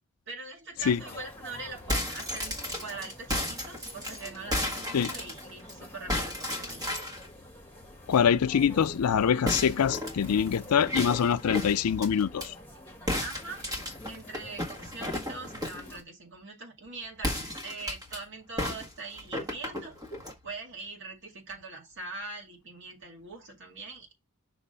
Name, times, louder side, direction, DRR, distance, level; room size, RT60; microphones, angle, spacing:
voice 1, 0.3-6.9 13.2-13.7 14.1-20.0 20.4-24.1, right 3 dB, 55° right, 2.1 m, -42 dB
sound 1, 0.8-16.0, left 1 dB, 10° left, 1.6 m, -48 dB
sound 2, 1.7-5.7 6.1-7.3 9.4-12.5 13.1-15.9 17.2-18.2 18.6-20.4, left 1 dB, 15° right, 1.5 m, -34 dB
voice 2, 8.1-12.5, left 7 dB, 85° left, 0.4 m, -24 dB
6.0 x 3.5 x 5.5 m
head